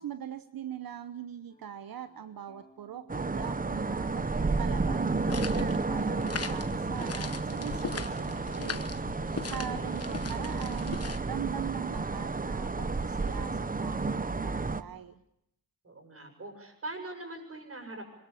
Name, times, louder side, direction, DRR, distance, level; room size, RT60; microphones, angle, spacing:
voice 1, 0.0-9.2 9.5-15.2, right 10 dB, 85° right, 11 dB, 1.0 m, -42 dB
sound 1, 1.5-5.4 5.6-9.5, left 1 dB, 15° left, 5.8 m, -57 dB
sound 2, 3.1-14.8, right 3 dB, 25° right, 0.9 m, -32 dB
sound 3, 5.1-11.2, left 5 dB, 45° left, 1.3 m, -39 dB
voice 2, 15.8-18.1, right 2 dB, 40° right, 5 dB, 7.2 m, -42 dB
26.0 x 22.0 x 8.3 m, 0.78 s
wide cardioid pair, 130°, 34 cm